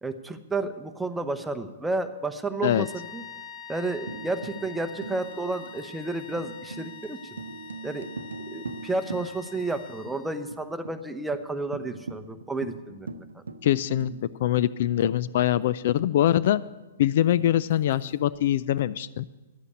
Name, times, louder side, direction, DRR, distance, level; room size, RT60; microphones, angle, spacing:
voice 1, 0.0-3.2 3.7-7.4 7.8-8.1 8.5-13.4, right 2 dB, 5° right, 8 dB, 0.8 m, -31 dB
sound 1, 2.6-10.5, left 6 dB, 30° left, 1.5 m, -45 dB
Tambourine, 4.1-9.8 10.1-10.2 10.5-11.0 11.3-11.4 11.7-15.8 17.4-18.4, right 3 dB, 80° right, 0.7 m, -42 dB
voice 2, 13.6-14.1 14.4-16.6 17.0-19.2, left 12 dB, 55° left, 17 dB, 0.3 m, -23 dB
11.5 x 8.2 x 8.4 m, 1.1 s
figure-of-eight pair, 115°, 0 cm